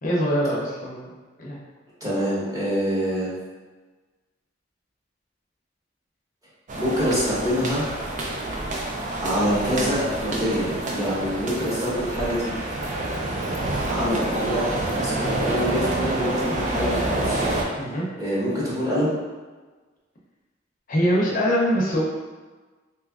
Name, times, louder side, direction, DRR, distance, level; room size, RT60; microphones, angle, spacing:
voice 1, 0.0-1.1 1.4-1.6 17.8-18.1 20.9-22.0, equal, 45° left, -4 dB, 0.6 m, -23 dB
voice 2, 2.0-3.4 6.8-7.8 9.2-12.5 13.8-17.5 18.2-19.2, equal, 20° right, -9 dB, 1.0 m, -25 dB
sound 1, 6.7-17.6, right 2 dB, 40° right, 0.4 m, -28 dB
2.9 x 2.4 x 3.5 m, 1.3 s
head